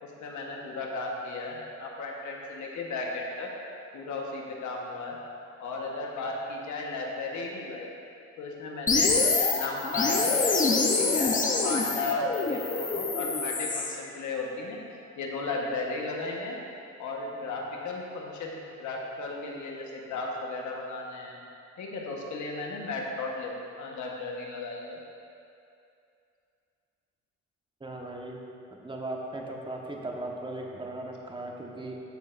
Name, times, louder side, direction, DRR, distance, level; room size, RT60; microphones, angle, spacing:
voice 1, 0.0-3.5 3.9-5.2 5.6-7.9 8.4-9.2 9.5-10.3 10.9-11.3 11.6-14.8 15.2-16.6 17.0-21.4 21.8-25.0, left 3 dB, 75° left, -1 dB, 1.2 m, -35 dB
sound 1, 8.9-14.0, left 3 dB, 25° left, 0.7 m, -26 dB
voice 2, 27.8-28.4 28.8-32.0, right 2 dB, 15° right, 0 dB, 1.1 m, -37 dB
13.5 x 6.5 x 2.5 m, 2.6 s
cardioid pair, 90°, 30 cm